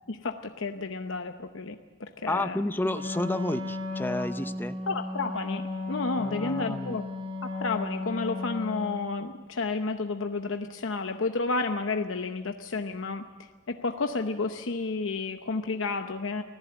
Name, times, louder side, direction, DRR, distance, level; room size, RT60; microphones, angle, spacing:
voice 1, 0.1-2.6 4.9-7.0 7.4-16.4, left 3 dB, 75° left, 6 dB, 0.8 m, -31 dB
voice 2, 2.3-4.7 6.2-7.0, left 1 dB, 10° left, 11 dB, 0.6 m, -31 dB
Wind instrument woodwind instrument, 2.9-9.0, left 3 dB, 25° right, 4.6 m, -34 dB
25.0 x 15.5 x 7.8 m, 1.4 s
head